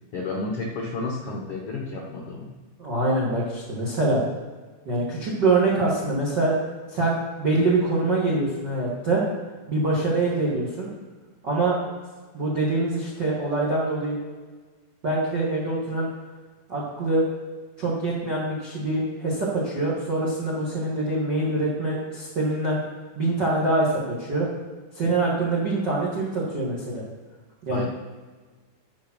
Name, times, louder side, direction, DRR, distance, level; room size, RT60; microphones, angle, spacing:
voice 1, 0.1-2.5 27.7-27.9, left 3 dB, 75° left, -1 dB, 1.3 m, -31 dB
voice 2, 2.8-4.2 4.8-6.5 6.9-9.2 9.7-10.9 11.4-11.8 12.3-14.2 15.0-16.1 16.7-17.2 17.8-22.8 23.1-24.5 24.9-27.0 27.6-27.9, right 2 dB, 60° right, -4 dB, 1.1 m, -24 dB
10.5 x 5.1 x 5.9 m, 1.4 s
omnidirectional pair, 4.4 m